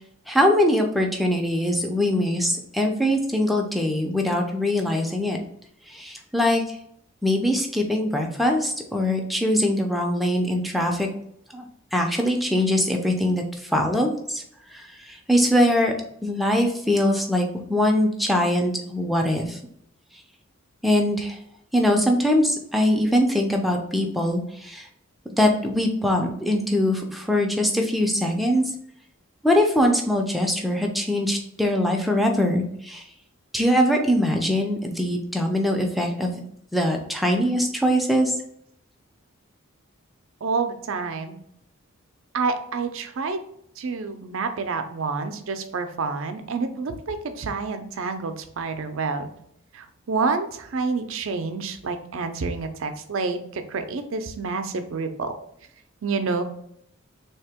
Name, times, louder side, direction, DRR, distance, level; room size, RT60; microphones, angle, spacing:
voice 1, 0.3-5.4 5.9-6.8 7.2-11.1 11.5-11.7 11.9-14.4 14.7-15.9 16.2-19.6 20.8-21.4 21.7-24.9 25.4-28.6 29.4-33.0 33.5-36.4 36.7-38.4, left 1 dB, ahead, 2 dB, 0.4 m, -22 dB
voice 2, 40.4-41.4 42.3-43.4 43.8-49.3 49.8-53.4 53.7-55.3 56.0-56.4, right 4 dB, 65° right, 8 dB, 0.5 m, -28 dB
3.5 x 2.8 x 3.5 m, 0.72 s
head